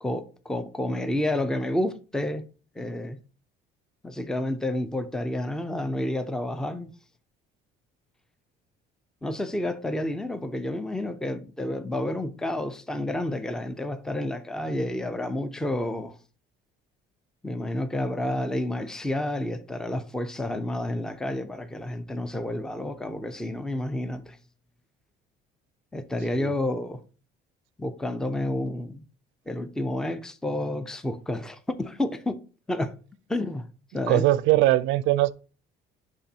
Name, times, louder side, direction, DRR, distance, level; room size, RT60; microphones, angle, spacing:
voice 1, 0.0-2.4 2.8-3.2 4.0-6.9 9.2-16.2 17.4-24.4 25.9-27.0 27.8-29.0 29.5-32.4 32.7-32.9 33.3-33.7 33.9-34.3, left 1 dB, 5° left, 0.5 m, -30 dB
voice 2, 34.1-35.3, right 16 dB, 80° right, 0.5 m, -21 dB
9.9 x 3.6 x 2.8 m
cardioid pair, 120°, 19 cm